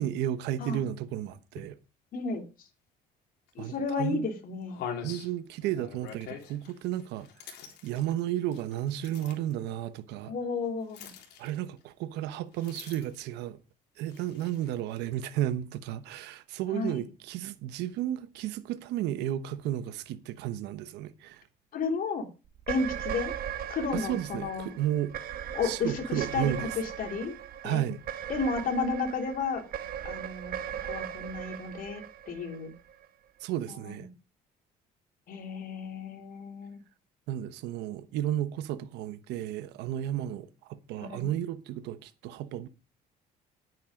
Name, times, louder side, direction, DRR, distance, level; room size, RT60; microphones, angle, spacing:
voice 1, 0.0-1.8 3.6-4.3 5.0-7.5 7.8-10.3 11.4-13.6 14.0-21.4 23.9-25.1 25.6-26.7 27.6-28.0 33.4-34.1 37.3-42.7, right 12 dB, 90° right, 1.1 m, -33 dB
voice 2, 2.1-2.4 3.5-4.8 10.2-11.1 16.7-17.0 21.7-22.3 22.7-23.3 23.7-24.8 25.5-27.4 27.6-27.8 28.3-29.6 30.0-30.6 30.8-32.7 33.9-34.0 35.3-36.8 41.0-41.3, left 4 dB, 55° left, 3.4 m, -32 dB
sound 1, 3.5-3.6 4.1-4.2 4.7-9.5 10.9-11.8 12.5-13.3 14.0-14.8, left 7 dB, 80° left, 3.7 m, -44 dB
sound 2, 22.6-33.1, right 10 dB, 60° right, 1.5 m, -38 dB
10.5 x 9.4 x 5.1 m
cardioid pair, 110°, 17 cm